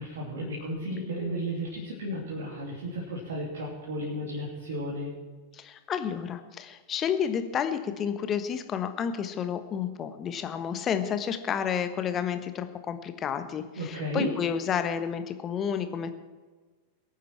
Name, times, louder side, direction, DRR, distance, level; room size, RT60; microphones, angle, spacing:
voice 1, 0.0-5.1 13.7-14.3, equal, 60° right, -3 dB, 3.1 m, -33 dB
voice 2, 5.5-16.1, left 8 dB, 25° left, 9 dB, 1.3 m, -30 dB
22.5 x 9.3 x 4.7 m, 1.4 s
figure-of-eight pair, 90°, 0 cm